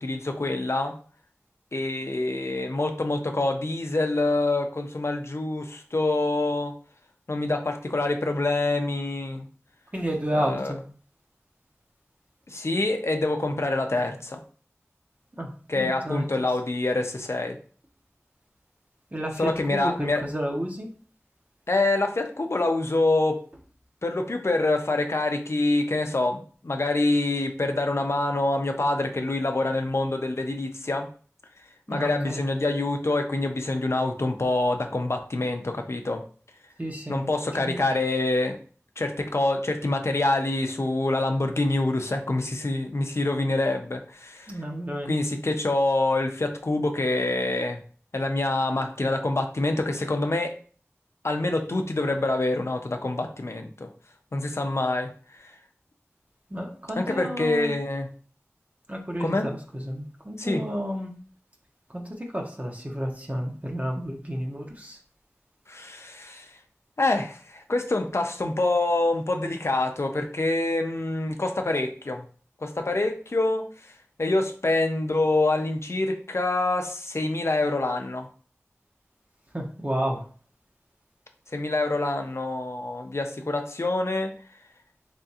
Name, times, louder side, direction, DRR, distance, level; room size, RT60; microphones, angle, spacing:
voice 1, 0.0-0.9 1.7-6.7 7.3-9.5 10.3-10.7 12.5-14.4 15.7-17.6 19.4-20.2 21.7-23.4 24.0-31.1 31.9-36.2 37.1-38.6 39.0-44.5 45.1-47.8 48.1-50.5 51.2-53.9 54.3-55.1 57.0-58.1 59.2-59.5 60.4-60.6 65.7-66.5 67.0-72.2 72.6-73.7 74.2-78.3 81.5-84.3, left 2 dB, 60° left, 5 dB, 0.5 m, -26 dB
voice 2, 9.9-10.8 15.4-16.5 19.1-20.9 31.9-32.4 36.8-37.3 37.6-38.0 44.5-45.2 56.5-57.7 58.9-61.1 61.9-65.0 79.5-80.3, equal, 30° right, 1 dB, 0.9 m, -31 dB
3.6 x 3.4 x 2.8 m, 0.43 s
wide cardioid pair, 40°, 5 cm